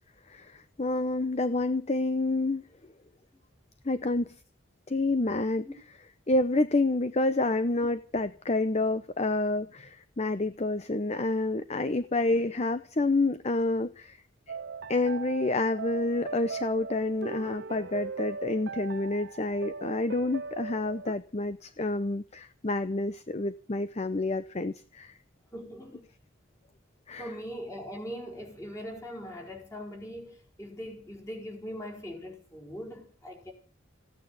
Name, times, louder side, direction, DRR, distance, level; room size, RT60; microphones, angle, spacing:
voice 1, 0.3-2.7 3.8-4.4 4.9-5.7 6.3-14.2 14.9-25.1 27.1-27.3, left 2 dB, 35° left, 0.7 m, -28 dB
sound 1, 14.5-21.1, right 4 dB, 55° right, 0.8 m, -39 dB
voice 2, 25.5-26.0 27.2-33.5, equal, 15° left, 4.4 m, -41 dB
16.0 x 9.2 x 8.9 m
head